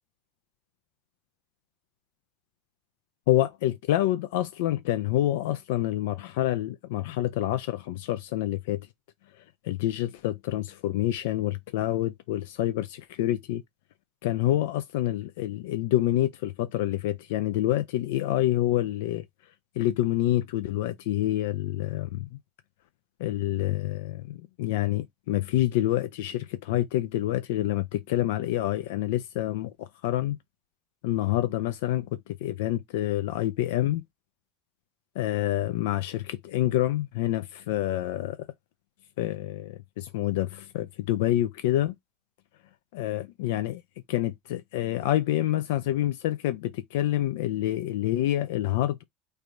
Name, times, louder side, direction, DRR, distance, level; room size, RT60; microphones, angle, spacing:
voice 1, 3.3-8.8 9.6-13.6 14.2-19.2 19.8-22.4 23.2-30.4 31.0-34.0 35.2-38.4 39.2-41.9 42.9-43.8 44.1-49.0, left 14 dB, 75° left, 0.5 m, -27 dB
3.3 x 2.6 x 4.5 m
hypercardioid pair, 80°, 0 cm